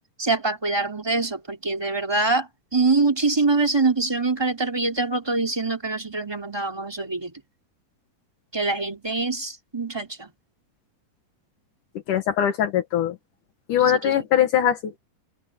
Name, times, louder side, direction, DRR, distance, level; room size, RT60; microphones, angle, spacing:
voice 1, 0.2-7.3 8.5-10.3 14.0-14.3, right 3 dB, 10° right, 2.4 m, -24 dB
voice 2, 12.1-13.2 13.7-14.8, left 10 dB, 65° left, 2.9 m, -21 dB
open air
omnidirectional pair, 4.0 m